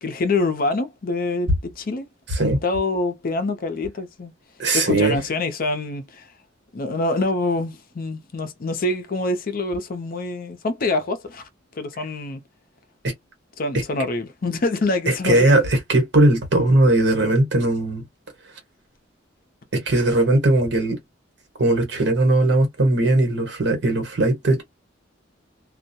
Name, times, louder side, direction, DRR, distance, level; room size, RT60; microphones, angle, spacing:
voice 1, 0.0-2.1 2.6-4.3 4.7-6.3 6.7-11.5 11.7-12.4 13.6-15.6, left 2 dB, 50° left, 0.5 m, -25 dB
voice 2, 2.3-2.6 4.6-5.2 13.0-13.1 15.1-18.0 19.7-21.0 21.6-24.6, right 2 dB, 65° right, 1.1 m, -19 dB
2.2 x 2.1 x 2.6 m
head